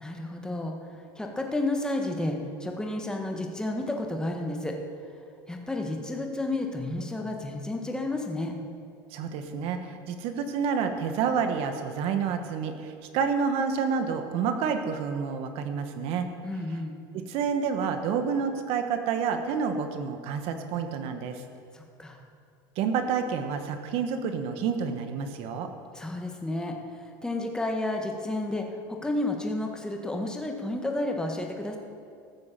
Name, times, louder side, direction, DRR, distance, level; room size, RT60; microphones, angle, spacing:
voice 1, 0.0-4.8 5.5-8.5 16.4-17.0 21.7-22.2 25.9-31.8, left 2 dB, 5° left, 2 dB, 1.5 m, -31 dB
voice 2, 9.1-16.3 17.1-21.4 22.8-25.7, right 6 dB, 60° right, 7 dB, 1.3 m, -29 dB
14.5 x 6.3 x 7.4 m, 2.4 s
supercardioid pair, 115°, 11 cm